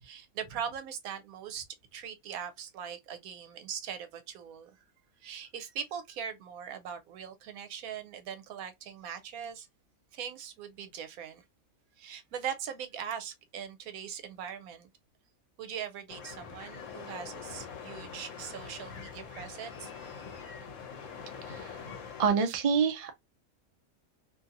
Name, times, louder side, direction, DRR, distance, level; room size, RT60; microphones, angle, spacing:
voice 1, 0.0-1.6 1.9-4.8 5.2-9.7 10.1-11.4 12.0-14.9 15.6-20.1, right 8 dB, 85° right, 1.1 m, -41 dB
sound 1, 16.1-22.3, left 6 dB, 70° left, 1.0 m, -44 dB
voice 2, 22.2-23.2, right 6 dB, 65° right, 0.3 m, -27 dB
2.7 x 2.7 x 2.4 m
omnidirectional pair, 1.5 m